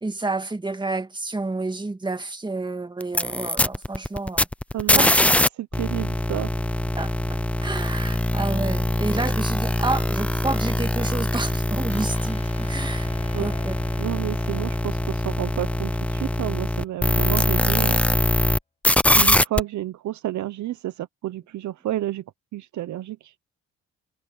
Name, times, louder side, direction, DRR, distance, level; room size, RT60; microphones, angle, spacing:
voice 1, 0.0-4.5 5.0-5.2 7.0-13.1 13.4-13.7, right 2 dB, 15° right, 2.0 m, -30 dB
sound 1, 3.0-5.5 5.7-18.6 18.8-19.6, left 1 dB, 5° left, 0.7 m, -23 dB
voice 2, 4.7-5.1 5.6-6.5 13.3-13.5 14.0-18.0 19.1-22.2 22.5-23.3, right 14 dB, 70° right, 1.0 m, -30 dB
sound 2, 11.9-18.0, left 3 dB, 20° left, 7.4 m, -44 dB
cardioid pair, 90°, 30 cm